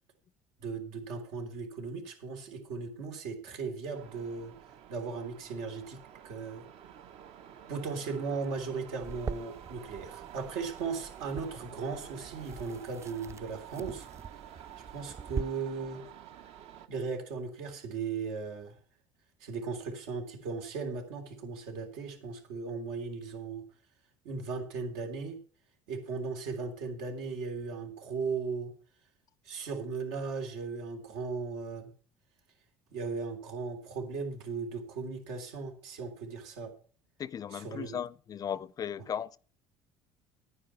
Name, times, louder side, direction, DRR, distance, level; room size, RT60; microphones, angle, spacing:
voice 1, 0.6-4.5 4.9-6.6 7.7-14.1 14.9-16.0 16.9-18.8 19.4-23.6 24.3-25.4 25.9-28.7 29.4-31.9 32.9-36.7 37.5-38.0, right 4 dB, 90° right, 3.5 m, -37 dB
sound 1, 3.9-16.9, right 9 dB, 65° right, 1.1 m, -50 dB
sound 2, 9.0-15.4, right 5 dB, 25° right, 0.5 m, -43 dB
voice 2, 37.2-39.4, left 8 dB, 35° left, 0.5 m, -36 dB
10.0 x 10.0 x 5.8 m
cardioid pair, 115°, 11 cm